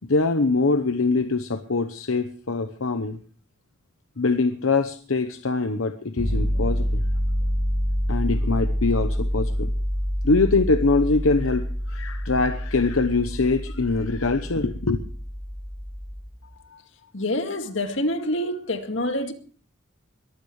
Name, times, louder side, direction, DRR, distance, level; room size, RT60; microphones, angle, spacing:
voice 1, 0.1-3.2 4.2-7.0 8.1-9.7 10.2-15.0, left 3 dB, 85° left, 0.9 m, -23 dB
sound 1, 6.2-16.3, equal, 10° left, 4.4 m, -27 dB
voice 2, 17.1-19.3, left 1 dB, 65° left, 2.1 m, -27 dB
22.0 x 15.0 x 3.2 m
head